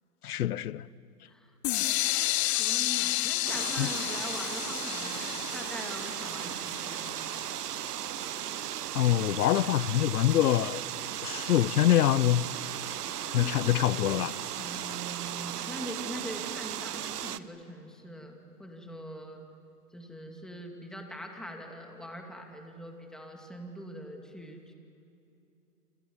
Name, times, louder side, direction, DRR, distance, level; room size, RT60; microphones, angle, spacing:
voice 1, 0.2-0.8 3.8-3.9 8.9-10.8 11.2-12.4 13.3-14.3, left 12 dB, 70° left, 0.8 m, -25 dB
sound 1, 1.6-7.5, left 15 dB, 45° left, 0.8 m, -31 dB
voice 2, 1.8-7.3 13.1-13.7 14.6-19.4 19.9-24.7, equal, ahead, 2.4 m, -43 dB
sound 2, 3.5-17.4, right 10 dB, 75° right, 1.0 m, -36 dB
28.5 x 27.5 x 7.3 m
hypercardioid pair, 130°, 46 cm